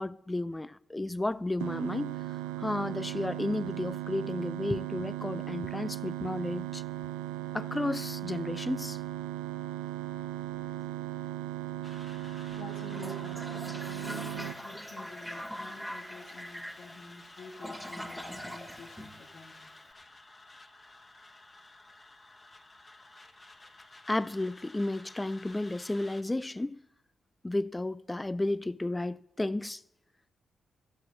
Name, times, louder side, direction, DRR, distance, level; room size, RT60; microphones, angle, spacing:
voice 1, 0.0-2.2 2.6-6.8 7.5-9.0 24.1-26.8 27.4-29.8, left 2 dB, 20° left, 0.4 m, -33 dB
sound 1, 1.6-14.5, right 15 dB, 90° right, 0.5 m, -37 dB
sound 2, 11.8-26.2, left 2 dB, 35° left, 1.5 m, -53 dB
voice 2, 12.5-19.7, left 2 dB, 75° left, 1.7 m, -48 dB
Toilet flush, 12.9-19.8, equal, 5° right, 2.0 m, -42 dB
13.0 x 7.6 x 7.6 m
hypercardioid pair, 45°, 0 cm